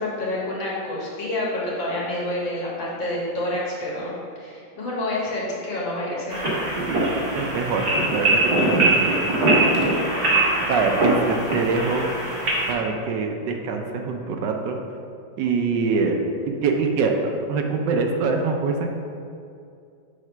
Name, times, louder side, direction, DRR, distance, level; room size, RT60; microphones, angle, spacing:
voice 1, 0.0-6.5, left 1 dB, 75° left, -5 dB, 2.2 m, -28 dB
sound 1, 6.3-12.7, right 2 dB, 35° right, 1.3 m, -22 dB
voice 2, 7.3-9.2 10.6-12.0 12.7-14.8 15.4-16.2 16.5-18.9, right 4 dB, 75° right, 3 dB, 1.2 m, -24 dB
6.7 x 3.8 x 5.5 m, 2.4 s
omnidirectional pair, 2.1 m